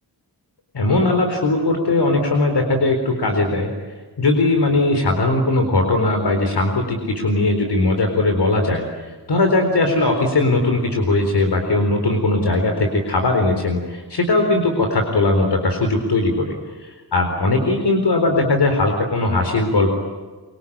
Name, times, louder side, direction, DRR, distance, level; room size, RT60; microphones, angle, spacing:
voice 1, 0.7-3.7 4.2-16.6 16.8-20.0, left 2 dB, 70° left, 4 dB, 4.2 m, -19 dB
25.0 x 24.0 x 8.7 m, 1.4 s
wide cardioid pair, 95°, 42 cm